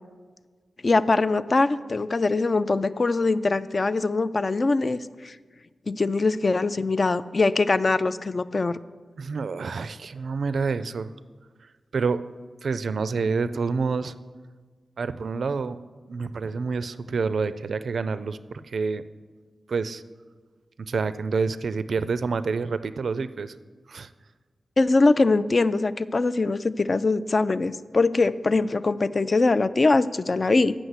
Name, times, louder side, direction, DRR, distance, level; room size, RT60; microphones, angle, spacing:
voice 1, 0.8-5.3 5.9-8.8 24.8-30.7, left 3 dB, 40° left, 15 dB, 0.3 m, -22 dB
voice 2, 9.2-11.1 11.9-12.2 12.6-14.2 15.0-15.8 16.1-19.0 19.7-20.0 20.8-23.5 23.9-24.1, right 4 dB, 70° right, 14 dB, 0.3 m, -28 dB
7.9 x 6.1 x 8.0 m, 1.5 s
wide cardioid pair, 110°, 0 cm